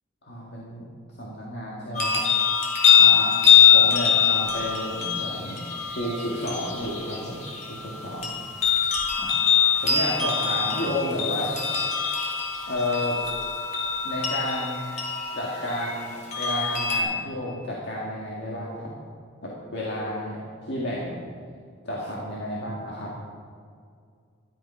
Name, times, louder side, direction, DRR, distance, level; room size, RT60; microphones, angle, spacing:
voice 1, 0.2-0.9 1.2-2.2 3.0-3.4 3.7-5.6 5.9-8.3 9.2-9.4 9.8-11.5 12.6-13.2 14.0-14.8 15.3-18.9 19.4-20.4 20.7-21.2 21.8-23.1, left 1 dB, 60° left, -4 dB, 2.0 m, -31 dB
sound 1, 1.9-17.0, left 8 dB, 35° left, 2.2 m, -23 dB
13.5 x 11.5 x 5.6 m, 2.2 s
head